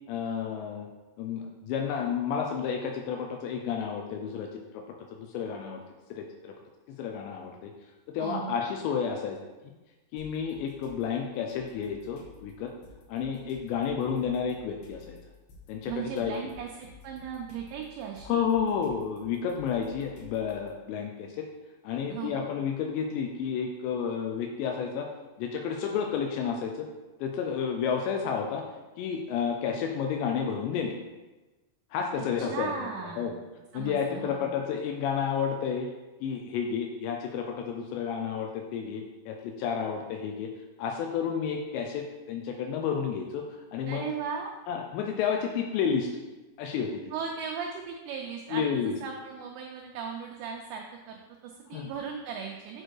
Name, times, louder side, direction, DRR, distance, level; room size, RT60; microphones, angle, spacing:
voice 1, 0.1-0.9 1.2-4.8 5.1-5.8 6.1-6.5 6.9-7.7 8.1-9.4 10.1-12.7 13.1-15.2 15.7-16.4 18.3-21.5 21.8-25.1 25.4-26.9 27.2-28.6 29.0-31.0 31.9-32.9 33.2-33.3 33.7-35.9 36.2-40.5 40.8-44.1 44.7-46.1 46.6-47.1 48.5-49.0 51.7-51.9, left 7 dB, 85° left, 2 dB, 2.5 m, -31 dB
voice 2, 8.2-8.6 15.9-18.4 22.1-22.5 32.2-32.3 32.5-33.4 33.7-34.5 43.9-44.5 47.1-52.8, right 6 dB, 85° right, 2 dB, 2.5 m, -37 dB
sound 1, 10.2-11.0 11.5-20.7, left 1 dB, 70° left, 3.7 m, -52 dB
7.7 x 4.4 x 4.6 m, 1.1 s
omnidirectional pair, 5.7 m